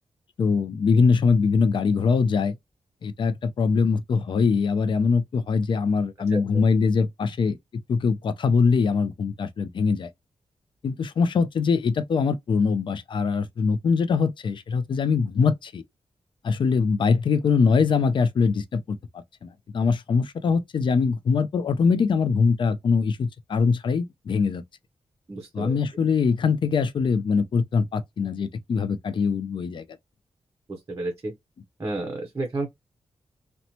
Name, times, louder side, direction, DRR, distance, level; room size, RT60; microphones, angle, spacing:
voice 1, 0.4-2.6 3.0-7.6 7.9-10.1 10.8-15.8 16.4-19.0 19.4-24.6 25.5-29.8, left 5 dB, 50° left, 0.3 m, -22 dB
voice 2, 25.3-25.7 30.7-31.3 31.8-32.7, right 2 dB, 30° right, 0.6 m, -31 dB
2.9 x 2.1 x 2.7 m
wide cardioid pair, 165°, 11 cm